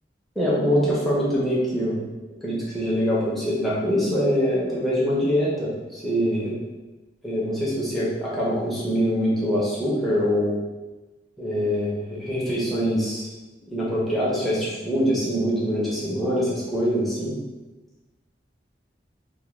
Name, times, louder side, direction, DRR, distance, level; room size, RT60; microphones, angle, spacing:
voice 1, 0.4-2.0 2.4-6.5 7.2-10.6 11.4-13.3 13.7-17.3, equal, ahead, -7 dB, 0.5 m, -24 dB
2.2 x 2.1 x 3.0 m, 1.2 s
head